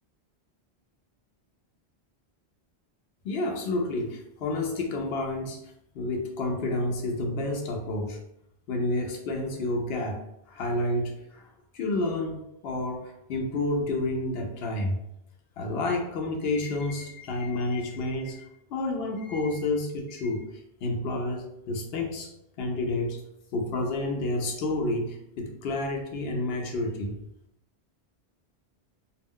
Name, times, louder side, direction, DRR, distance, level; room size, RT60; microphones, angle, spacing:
voice 1, 3.2-5.6 5.9-8.2 8.7-10.2 10.5-11.5 11.7-12.4 12.6-15.0 15.6-18.4 18.7-20.4 20.8-22.3 22.6-23.2 23.5-27.2, left 2 dB, 70° left, 1 dB, 0.8 m, -29 dB
2.3 x 2.1 x 3.6 m, 0.80 s
omnidirectional pair, 1.1 m